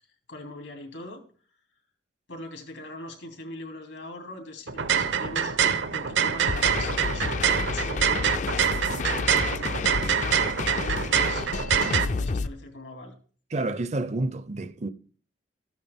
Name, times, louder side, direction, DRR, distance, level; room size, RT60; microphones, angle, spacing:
voice 1, 0.3-1.2 2.3-11.5 11.7-13.1, left 1 dB, 85° left, 2.8 m, -41 dB
sound 1, 4.7-12.1, right 7 dB, 80° right, 0.9 m, -25 dB
sound 2, 6.5-12.5, left 4 dB, 40° left, 0.4 m, -30 dB
voice 2, 13.5-14.9, right 2 dB, 35° right, 0.5 m, -29 dB
14.0 x 9.3 x 3.5 m
head